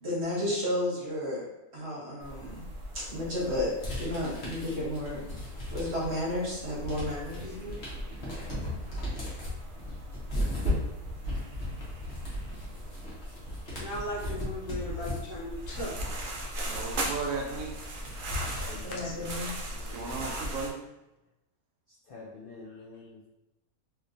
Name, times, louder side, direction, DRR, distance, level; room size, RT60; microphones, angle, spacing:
voice 1, 0.0-1.5 1.7-2.6 2.9-5.2 5.7-7.5 8.9-9.3 18.8-19.5, left 1 dB, 50° right, -5 dB, 1.2 m, -32 dB
sound 1, 2.2-20.7, right 1 dB, 90° right, 0.4 m, -40 dB
sound 2, 3.8-6.2 6.6-20.5, left 1 dB, 45° left, 1.2 m, -37 dB
voice 2, 7.4-9.2 13.8-16.2 18.2-18.4 18.9-19.4 22.7-22.8, equal, 65° left, -3 dB, 1.0 m, -40 dB
voice 3, 16.6-17.7 19.9-20.8, right 4 dB, 70° right, 0 dB, 1.0 m, -35 dB
voice 4, 18.6-19.3 19.7-20.1 22.1-23.2, left 3 dB, 90° left, -4 dB, 0.4 m, -47 dB
3.2 x 2.9 x 2.5 m, 0.92 s
omnidirectional pair, 1.6 m